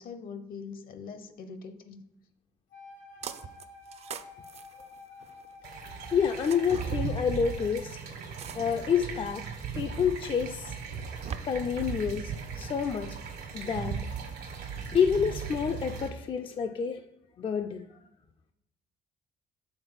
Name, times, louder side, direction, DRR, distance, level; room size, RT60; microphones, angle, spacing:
voice 1, 0.0-2.0, left 5 dB, 60° left, 10 dB, 0.8 m, -42 dB
Wind instrument woodwind instrument, 2.7-7.8, left 4 dB, 80° left, 1.4 m, -50 dB
sound 1, 3.2-3.6 3.9-5.5 6.3-7.0 8.4-8.9 9.6-9.7 10.8-11.4, right 8 dB, 40° right, 0.4 m, -40 dB
sound 2, 5.6-16.1, right 6 dB, 75° right, 1.4 m, -38 dB
voice 2, 6.1-8.0 8.6-9.5 9.7-10.8 11.4-13.2 13.5-14.0 14.9-17.0 17.4-17.9, left 7 dB, 30° left, 7 dB, 0.4 m, -28 dB
5.9 x 3.7 x 5.4 m, 0.88 s
cardioid pair, 110°, 17 cm